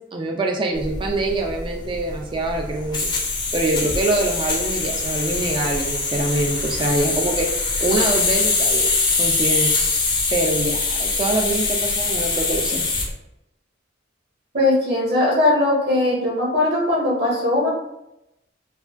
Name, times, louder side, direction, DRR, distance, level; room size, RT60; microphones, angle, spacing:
voice 1, 0.1-3.1 3.5-7.5 7.8-8.9 9.2-9.7 10.3-12.8, right 2 dB, 25° right, 2 dB, 0.4 m, -24 dB
sound 1, 0.8-13.1, left 3 dB, 25° left, 0.6 m, -23 dB
voice 2, 14.5-17.7, left 1 dB, 60° right, -4 dB, 1.1 m, -19 dB
4.7 x 2.3 x 2.4 m, 0.87 s
head